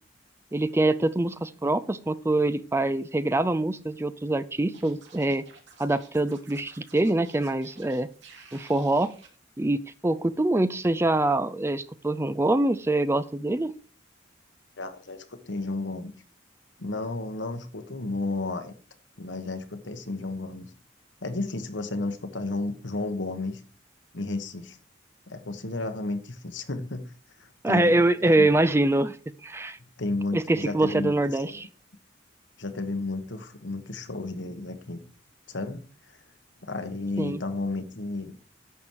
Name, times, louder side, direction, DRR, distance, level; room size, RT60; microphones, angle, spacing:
voice 1, 0.5-5.4 5.8-8.1 8.5-9.1 9.6-13.7 27.6-29.2 29.4-29.8 30.3-31.7 37.2-37.4, right 2 dB, 15° right, 14 dB, 0.4 m, -24 dB
Scratching (performance technique), 4.7-9.3, right 5 dB, 70° right, 2.6 m, -52 dB
voice 2, 14.8-16.1 16.8-18.7 19.2-20.7 21.2-23.6 24.1-24.8 25.3-27.0 27.4-28.5 30.0-31.4 32.6-35.0 35.5-35.8 36.1-36.2 36.6-38.4, left 2 dB, 75° left, 8 dB, 1.3 m, -32 dB
11.0 x 7.2 x 4.7 m, 0.39 s
head